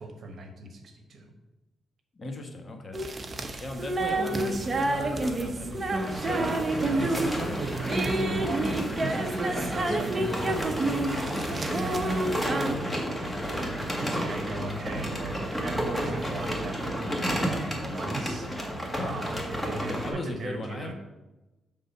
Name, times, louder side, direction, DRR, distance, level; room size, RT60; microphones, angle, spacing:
voice 1, 0.0-1.3 6.7-13.7 14.0-18.5 19.0-20.9, right 3 dB, 60° right, 5 dB, 1.1 m, -38 dB
voice 2, 2.2-3.1 3.6-6.0 6.6-6.9 7.3-7.7 19.0-19.4 19.8-20.9, left 2 dB, 35° left, 3 dB, 1.3 m, -38 dB
sound 1, 2.9-12.7, right 2 dB, 35° right, 0.8 m, -29 dB
sound 2, 5.9-20.1, equal, 5° left, 1.6 m, -32 dB
6.8 x 3.7 x 5.4 m, 1.1 s
cardioid pair, 75°, 0 cm